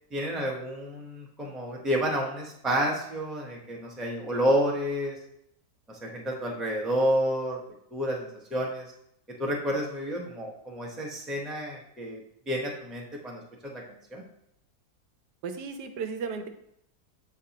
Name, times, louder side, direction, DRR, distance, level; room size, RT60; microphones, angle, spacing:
voice 1, 0.1-5.2 5.9-7.6 7.9-8.9 9.4-12.2 12.5-13.8 14.1-14.2, equal, ahead, -2 dB, 0.5 m, -30 dB
voice 2, 15.4-16.5, right 5 dB, 80° right, 7 dB, 1.2 m, -34 dB
7.6 x 4.6 x 2.8 m, 0.76 s
omnidirectional pair, 1.8 m